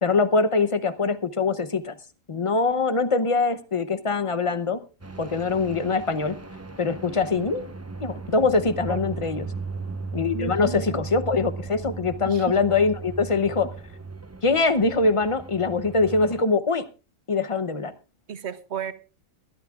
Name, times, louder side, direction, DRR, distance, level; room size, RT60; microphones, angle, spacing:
voice 1, 0.0-1.9 2.3-4.8 5.2-6.3 6.8-7.7 8.0-9.5 10.1-13.7 14.4-16.8 17.3-17.9, left 4 dB, 30° left, 12 dB, 0.7 m, -23 dB
sound 1, 5.0-16.4, right 4 dB, 15° right, 0.6 m, -37 dB
voice 2, 10.3-11.0 12.3-12.4 18.3-18.9, right 8 dB, 55° right, 13 dB, 1.1 m, -33 dB
22.5 x 13.0 x 2.4 m, 0.32 s
omnidirectional pair, 1.4 m